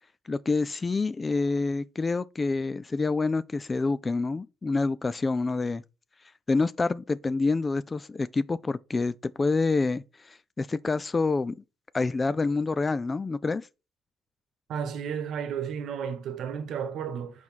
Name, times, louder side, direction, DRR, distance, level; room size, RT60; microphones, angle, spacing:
voice 1, 0.3-5.8 6.5-11.6 11.9-13.7, left 3 dB, 30° left, 0.4 m, -27 dB
voice 2, 14.7-17.4, right 7 dB, 60° right, 1.1 m, -33 dB
5.4 x 4.6 x 4.4 m
hypercardioid pair, 50°, 0 cm